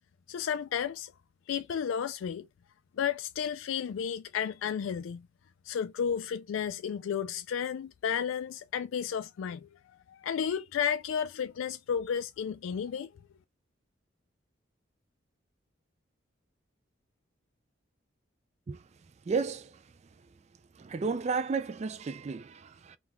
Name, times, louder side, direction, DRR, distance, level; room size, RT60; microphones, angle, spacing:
voice 1, 0.3-1.1 1.5-2.5 3.0-5.2 5.7-9.7 10.1-13.1, left 7 dB, 85° left, 0.3 m, -32 dB
voice 2, 19.3-19.8 20.8-23.0, right 4 dB, 35° right, 0.3 m, -33 dB
3.7 x 2.3 x 4.3 m
head